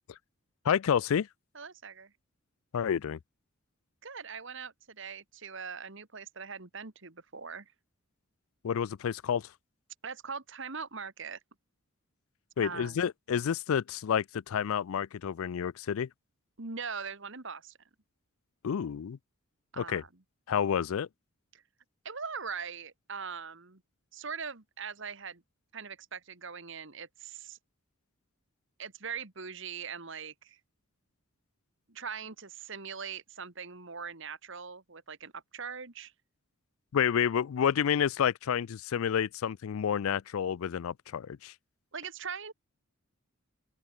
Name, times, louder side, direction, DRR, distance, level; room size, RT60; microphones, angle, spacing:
voice 1, 0.7-1.3 2.7-3.2 8.6-9.5 12.6-16.1 18.6-19.2 19.8-20.0 20.5-21.1 36.9-41.5, left 8 dB, 75° left, 0.4 m, -29 dB
voice 2, 1.5-2.1 4.0-7.7 10.0-11.4 12.6-13.1 16.6-17.8 19.7-20.2 21.5-21.6 22.1-23.8 24.1-25.4 25.7-27.6 28.8-30.6 31.9-36.1 41.9-42.5, right 6 dB, 60° right, 1.8 m, -41 dB
open air
head